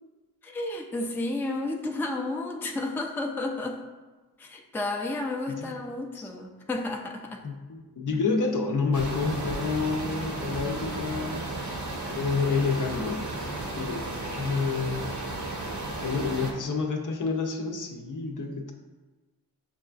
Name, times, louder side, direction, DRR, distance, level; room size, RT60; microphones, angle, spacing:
voice 1, 0.4-3.8 4.4-7.5, left 2 dB, 5° left, 1 dB, 0.4 m, -32 dB
voice 2, 7.4-11.6 12.1-13.3 13.8-15.1 16.0-18.7, left 4 dB, 55° left, 2 dB, 0.6 m, -29 dB
sound 1, 8.9-16.5, right 2 dB, 50° right, 0.8 m, -34 dB
5.9 x 2.3 x 2.4 m, 1.2 s
cardioid pair, 40°, 37 cm